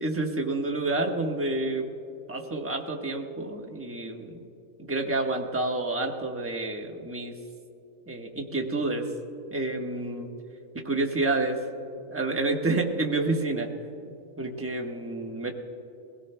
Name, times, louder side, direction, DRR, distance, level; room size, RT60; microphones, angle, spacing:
voice 1, 0.0-1.9 2.3-4.4 4.8-7.3 8.1-9.1 9.5-10.3 10.8-11.6 12.1-13.7 14.4-15.5, right 2 dB, 10° right, 1 dB, 0.9 m, -29 dB
22.5 x 17.0 x 2.2 m, 2.8 s
omnidirectional pair, 1.7 m